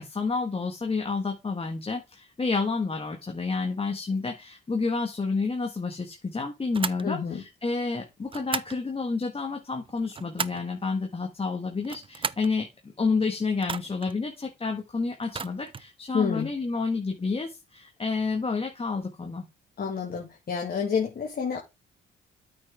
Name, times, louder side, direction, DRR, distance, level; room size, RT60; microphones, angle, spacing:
voice 1, 0.0-12.7 13.0-19.4, left 4 dB, 30° left, 2 dB, 1.7 m, -29 dB
sound 1, 6.7-7.1 8.3-8.8 9.8-10.7 11.8-12.5 13.6-14.1 15.2-15.9, right 5 dB, 25° right, 0.5 m, -34 dB
voice 2, 7.0-7.4 16.1-16.5 19.8-21.6, left 6 dB, 45° left, 0 dB, 2.0 m, -28 dB
8.8 x 6.0 x 3.6 m, 0.25 s
supercardioid pair, 65°, 21 cm